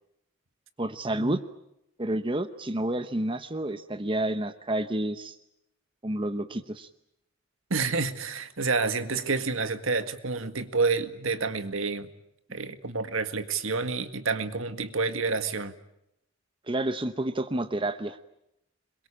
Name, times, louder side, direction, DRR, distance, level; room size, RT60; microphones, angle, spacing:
voice 1, 0.8-1.4 2.0-5.4 6.0-6.9 16.7-18.2, right 1 dB, 25° right, 10 dB, 0.9 m, -29 dB
voice 2, 7.7-12.1 12.5-15.7, right 4 dB, 75° right, 9 dB, 1.8 m, -29 dB
26.5 x 22.5 x 8.7 m, 0.82 s
head